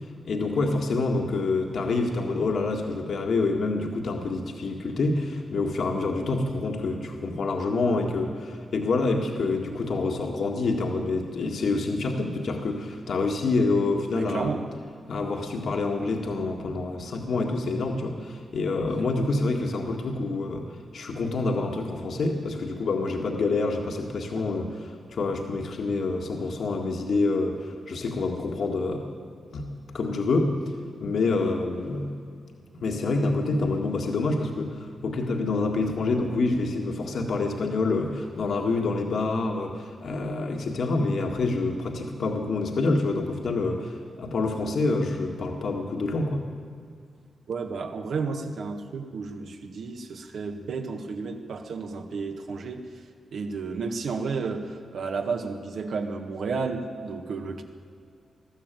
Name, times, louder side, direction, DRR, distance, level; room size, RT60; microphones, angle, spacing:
voice 1, 0.2-14.6 15.1-20.7 20.9-29.0 29.5-30.6 31.0-32.1 32.7-46.4, left 3 dB, 60° left, 2 dB, 1.9 m, -27 dB
voice 2, 14.1-14.7 24.4-24.5 47.5-52.8 53.3-57.6, right 4 dB, 70° right, 3 dB, 1.7 m, -32 dB
20.5 x 14.0 x 9.1 m, 2.3 s
wide cardioid pair, 165°, 0 cm